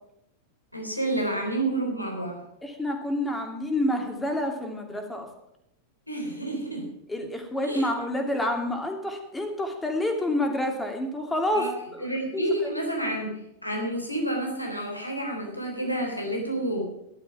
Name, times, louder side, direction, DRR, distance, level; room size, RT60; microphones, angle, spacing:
voice 1, 0.7-2.4 6.1-6.9 7.6-7.9 11.5-11.7 12.0-16.9, right 1 dB, 90° left, 1 dB, 3.7 m, -29 dB
voice 2, 2.6-5.3 7.1-11.7 11.9-12.1 12.3-12.4, left 1 dB, 10° left, 3 dB, 2.6 m, -28 dB
13.0 x 11.5 x 5.9 m, 0.81 s
figure-of-eight pair, 90°, 0 cm